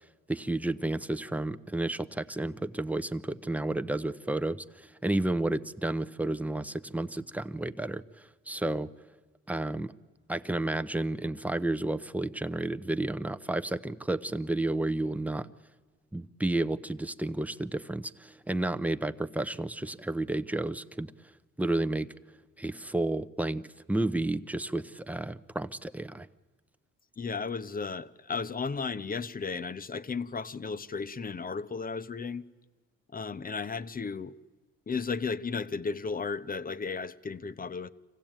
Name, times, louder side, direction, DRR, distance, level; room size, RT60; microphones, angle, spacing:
voice 1, 0.3-8.0 8.5-8.9 9.5-9.9 10.3-15.5 16.1-21.1 21.6-22.1 22.6-23.6 23.9-26.3, right 2 dB, 5° right, 0.7 m, -31 dB
voice 2, 27.2-32.4 33.1-34.4 34.9-37.9, left 5 dB, 30° left, 0.8 m, -34 dB
26.0 x 16.0 x 9.0 m
cardioid pair, 90°, 30 cm